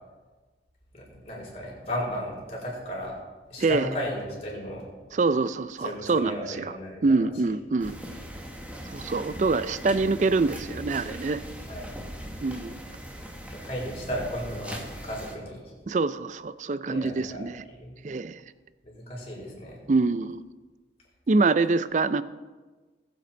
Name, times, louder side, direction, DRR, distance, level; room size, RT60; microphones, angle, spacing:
voice 1, 0.9-3.1 3.5-4.8 5.8-7.6 11.7-12.0 13.5-15.7 16.9-18.0 18.8-19.9, equal, 35° left, -4 dB, 4.7 m, -35 dB
voice 2, 5.1-6.7 7.0-8.0 8.9-11.4 12.4-12.8 15.9-17.6 18.0-18.4 19.9-20.4 21.3-22.2, right 3 dB, 40° right, 15 dB, 0.4 m, -25 dB
sound 1, 7.8-15.4, equal, 5° right, 1.1 m, -40 dB
20.0 x 8.0 x 4.4 m, 1.3 s
head